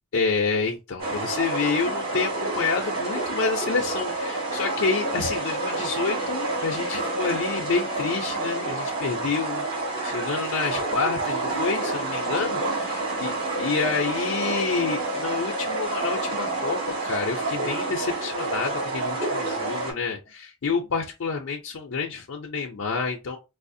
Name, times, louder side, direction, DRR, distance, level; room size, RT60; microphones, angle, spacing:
voice 1, 0.1-23.4, left 5 dB, 75° left, 0.5 m, -28 dB
sound 1, 1.0-19.9, right 2 dB, 40° right, 2.1 m, -28 dB
4.8 x 2.0 x 2.6 m
head